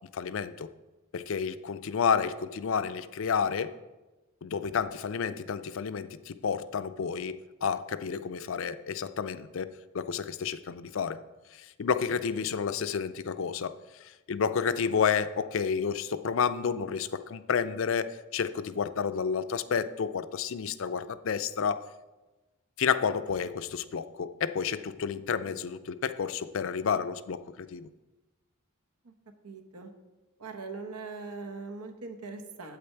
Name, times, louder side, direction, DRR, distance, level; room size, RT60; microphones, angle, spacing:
voice 1, 0.1-0.7 1.1-3.7 4.4-11.2 11.5-13.7 14.0-21.9 22.8-27.9, left 6 dB, 60° left, 13 dB, 0.4 m, -30 dB
voice 2, 29.4-29.9 30.4-32.8, right 4 dB, 90° right, 5 dB, 1.0 m, -41 dB
8.5 x 7.9 x 4.5 m, 1.1 s
head